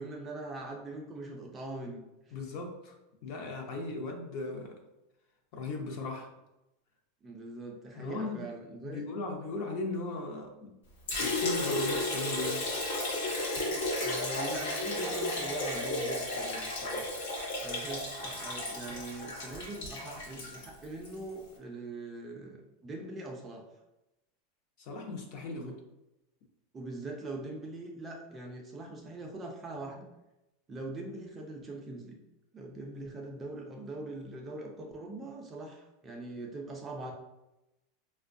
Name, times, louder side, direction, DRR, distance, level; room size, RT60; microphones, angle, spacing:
voice 1, 0.0-2.3 7.2-9.1 14.0-17.1 17.6-23.6 25.6-25.7 26.7-30.1 30.7-32.2 32.5-37.1, right 2 dB, 15° right, 0 dB, 0.4 m, -42 dB
voice 2, 2.3-2.9 3.2-4.8 5.5-6.3 8.0-8.5 8.8-10.7 11.2-12.7 24.8-25.7, left 3 dB, 45° left, 3 dB, 0.6 m, -37 dB
Liquid, 11.1-21.2, left 2 dB, 85° left, 1.0 m, -33 dB
4.3 x 2.2 x 2.5 m, 0.94 s
supercardioid pair, 170°, 0 cm